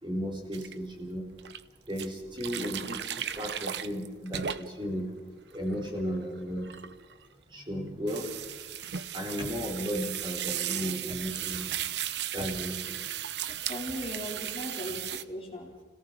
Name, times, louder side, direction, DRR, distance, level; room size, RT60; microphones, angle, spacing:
voice 1, 0.0-1.3 1.9-5.1 5.5-6.7 7.5-8.3 9.1-11.7 12.3-13.0, equal, 25° right, -1 dB, 4.4 m, -34 dB
sound 1, 0.5-0.7 1.4-1.6 2.0-4.9 5.4-7.3 8.1-15.2, right 10 dB, 75° right, 0.7 m, -36 dB
voice 2, 13.7-15.7, equal, 30° left, -1 dB, 3.4 m, -38 dB
27.0 x 18.0 x 6.1 m, 1.3 s
head